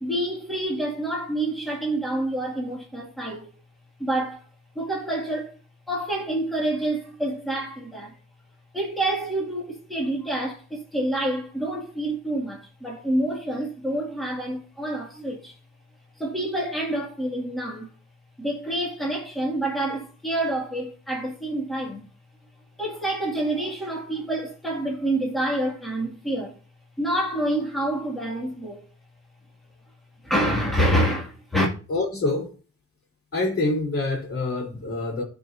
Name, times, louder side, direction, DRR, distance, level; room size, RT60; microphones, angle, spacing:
voice 1, 0.0-3.5 4.0-4.4 4.8-5.5 5.9-8.1 8.7-15.5 16.2-17.9 18.4-22.1 22.8-26.5 27.0-28.8 30.2-31.7, right 1 dB, ahead, 2.2 m, -27 dB
voice 2, 31.9-32.5 33.3-35.2, left 2 dB, 50° left, 3.6 m, -26 dB
15.0 x 5.1 x 2.7 m
wide cardioid pair, 145°, 29 cm